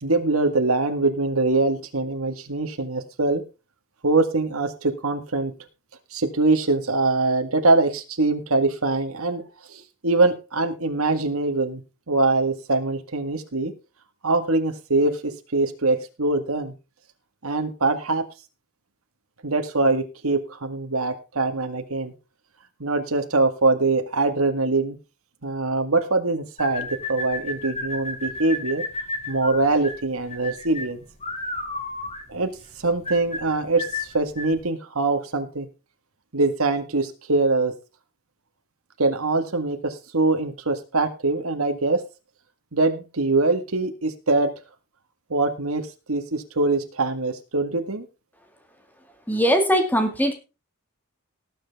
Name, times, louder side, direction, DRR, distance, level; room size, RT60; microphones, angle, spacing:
voice 1, 0.0-3.4 4.0-5.5 6.1-9.4 9.7-11.8 12.1-13.7 14.2-16.7 17.4-18.3 19.4-22.1 22.8-25.0 25.4-28.8 29.3-31.0 32.3-32.5 32.8-35.7 36.3-37.7 39.0-42.0 42.7-44.5 45.3-48.1, right 3 dB, 90° right, 6 dB, 1.8 m, -23 dB
sound 1, 26.6-34.6, left 2 dB, 30° left, 3.9 m, -32 dB
voice 2, 49.3-50.3, equal, 10° left, 6 dB, 2.1 m, -20 dB
18.5 x 7.8 x 3.6 m, 0.29 s
head